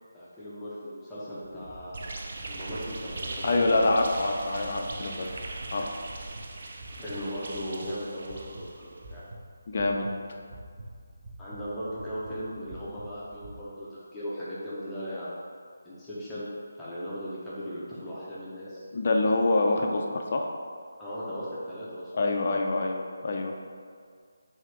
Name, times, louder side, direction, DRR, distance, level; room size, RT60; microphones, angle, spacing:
voice 1, 0.1-2.1 2.4-3.9 6.9-9.2 11.4-15.4 15.8-16.5 16.8-18.8 21.0-22.1, equal, 5° left, -12 dB, 0.8 m, -37 dB
sound 1, 1.4-13.5, right 1 dB, 30° right, 1.1 m, -47 dB
sound 2, 1.9-9.0, right 3 dB, 50° right, 0.5 m, -40 dB
voice 2, 3.4-5.3 5.7-6.0 9.7-10.1 18.9-20.4 22.1-23.5, left 2 dB, 45° left, 2 dB, 0.5 m, -26 dB
5.7 x 2.8 x 3.3 m, 2.1 s
figure-of-eight pair, 155°, 0 cm